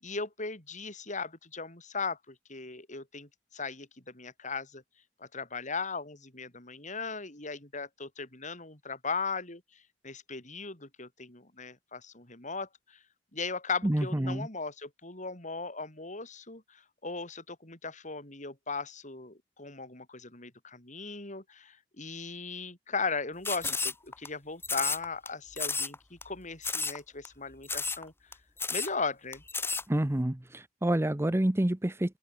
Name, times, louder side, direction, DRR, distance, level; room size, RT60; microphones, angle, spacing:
voice 1, 0.0-4.8 5.2-9.6 10.0-13.0 13.3-28.1 28.7-29.4, left 4 dB, 45° left, 6.7 m, -38 dB
voice 2, 13.8-14.5 29.9-32.2, right 1 dB, 15° right, 0.7 m, -28 dB
sound 1, 23.4-24.3 24.6-25.3 25.6-25.9 26.2-26.3 26.6-27.0 27.2-27.3 27.6-28.0 28.3-28.4 28.6-28.9 29.3-29.8, left 4 dB, 15° left, 1.5 m, -32 dB
open air
head